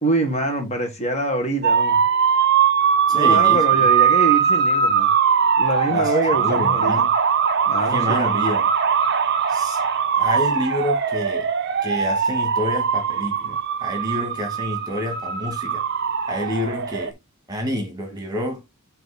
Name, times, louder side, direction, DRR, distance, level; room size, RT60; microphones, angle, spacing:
voice 1, 0.0-2.1 3.1-5.1 5.6-7.0 7.7-8.3, right 1 dB, 30° left, 1.6 m, -24 dB
sound 1, 1.6-17.1, right 7 dB, 50° right, 0.6 m, -20 dB
voice 2, 3.1-3.6 5.9-7.1 7.8-8.7 9.5-9.8 10.2-11.5 11.8-15.8 16.3-17.1 17.5-18.6, left 1 dB, 20° right, 1.8 m, -28 dB
9.0 x 3.0 x 4.2 m
head